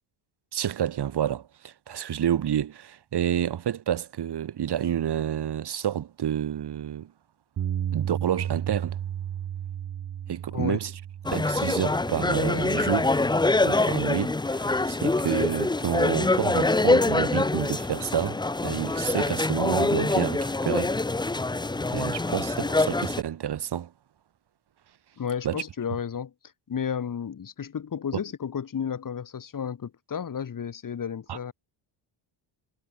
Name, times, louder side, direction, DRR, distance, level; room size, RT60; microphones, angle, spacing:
voice 1, 0.5-7.1 7.9-9.0 10.3-10.9 11.3-13.2 13.6-20.9 21.9-23.9 25.4-25.6 31.3-31.5, right 10 dB, 55° right, 2.6 m, -29 dB
Bass guitar, 7.6-13.8, right 10 dB, 40° right, 0.8 m, -34 dB
sound 1, 11.3-23.2, left 2 dB, 10° left, 0.8 m, -25 dB
voice 2, 25.2-26.3 26.7-31.5, left 7 dB, 40° left, 3.1 m, -32 dB
cardioid pair, 115°, 48 cm